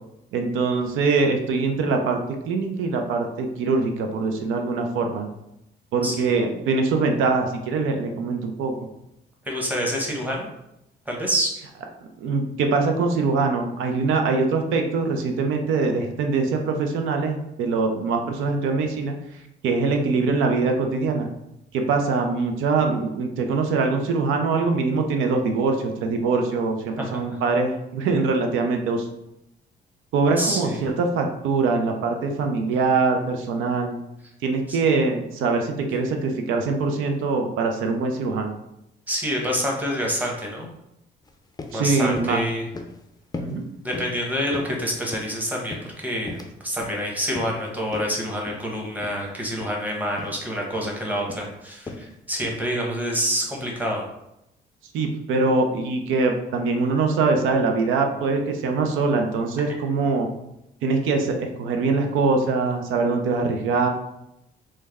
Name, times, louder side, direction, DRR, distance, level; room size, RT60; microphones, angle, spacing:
voice 1, 0.3-2.2 2.5-5.3 5.9-8.7 12.2-19.2 19.6-21.3 21.7-29.1 30.1-34.0 34.4-38.5 41.7-42.4 43.4-43.7 54.9-60.3 60.8-63.9, right 4 dB, 85° right, 4 dB, 0.5 m, -23 dB
voice 2, 9.5-10.5 11.1-11.5 27.1-27.2 30.4-30.8 34.7-34.8 39.1-40.7 41.7-42.7 43.8-54.0, equal, 10° right, -1 dB, 0.9 m, -27 dB
sound 1, 41.2-41.3 41.6-41.8 42.2-42.4 42.7-43.0 43.3-43.6 43.9-44.2 44.5-45.3 45.7-46.5 46.8-47.0 47.3-47.6 47.9-48.1 48.5-48.6 49.0-49.2 49.5-49.7 50.2-50.4 50.7-51.0 51.3-51.5 51.9-52.1 52.4-52.6, left 3 dB, 20° left, 0.4 m, -37 dB
3.2 x 2.1 x 3.4 m, 0.84 s
cardioid pair, 90°, 20 cm